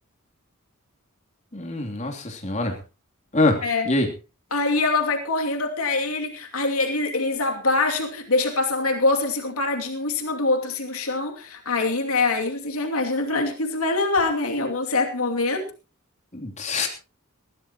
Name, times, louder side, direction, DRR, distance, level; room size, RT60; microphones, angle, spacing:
voice 1, 1.5-2.7 3.3-3.6 3.8-4.1 16.3-16.9, left 2 dB, 35° left, 2 dB, 3.1 m, -24 dB
voice 2, 4.5-15.7, left 3 dB, 90° left, 3 dB, 2.7 m, -24 dB
21.0 x 15.0 x 3.0 m, 0.31 s
head